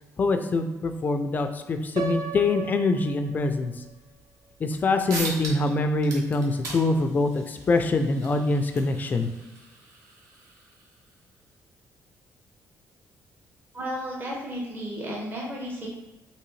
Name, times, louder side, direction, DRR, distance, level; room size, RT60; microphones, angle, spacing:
voice 1, 0.2-3.7 4.6-9.3, left 3 dB, 30° left, 7 dB, 0.3 m, -24 dB
Piano, 2.0-3.9, right 5 dB, 85° right, 0.5 m, -35 dB
sound 1, 5.1-5.7 6.0-11.1, right 2 dB, 65° right, 0.9 m, -39 dB
voice 2, 13.7-15.9, equal, 30° right, -3 dB, 0.8 m, -33 dB
3.7 x 2.7 x 3.1 m, 1.1 s
cardioid pair, 135°, 6 cm